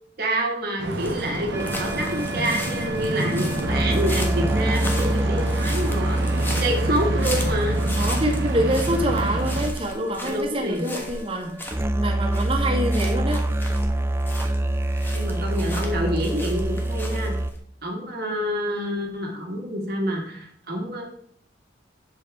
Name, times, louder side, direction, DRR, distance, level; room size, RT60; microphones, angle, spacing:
voice 1, 0.2-6.2 6.5-7.8 10.2-10.9 15.1-17.3 17.8-21.0, equal, 60° right, 0 dB, 1.7 m, -27 dB
sound 1, 0.8-17.6, left 1 dB, 10° left, 1.3 m, -37 dB
sound 2, 0.8-9.7, right 1 dB, 75° right, 1.1 m, -29 dB
sound 3, 1.5-17.5, right 1 dB, 15° right, 0.4 m, -26 dB
voice 2, 8.0-11.6 12.0-13.4, right 1 dB, 30° right, -3 dB, 1.8 m, -26 dB
8.0 x 7.5 x 3.5 m, 0.63 s
head